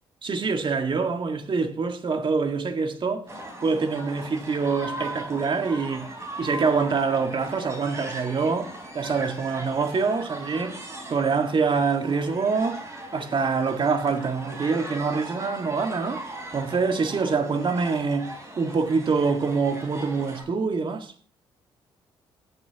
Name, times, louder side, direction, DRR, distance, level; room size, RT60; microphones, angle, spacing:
voice 1, 0.2-3.2 3.6-6.1 6.4-10.8 11.1-12.8 13.1-16.2 16.5-18.3 18.6-21.1, right 4 dB, 45° right, 1.9 m, -25 dB
sound 1, 3.3-20.4, right 1 dB, 25° right, 4.4 m, -39 dB
17.5 x 7.2 x 3.0 m
hypercardioid pair, 55°, 12 cm